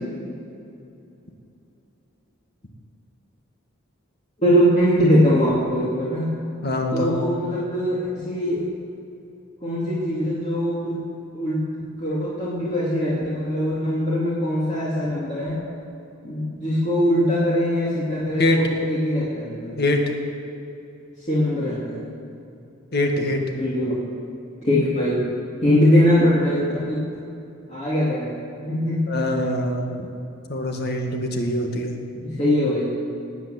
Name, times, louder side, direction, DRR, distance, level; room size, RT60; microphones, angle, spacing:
voice 1, 4.4-6.3 6.9-8.6 9.6-11.6 12.0-15.6 16.2-19.8 21.3-22.0 23.5-23.9 24.6-25.3 25.6-27.0 27.7-29.1 32.2-33.0, equal, 35° left, -7 dB, 2.6 m, -22 dB
voice 2, 6.6-7.2 18.4-18.6 19.8-20.0 22.9-23.4 29.1-29.9 30.5-32.0, left 1 dB, 55° left, 3 dB, 1.9 m, -23 dB
18.0 x 9.0 x 7.8 m, 2.7 s
head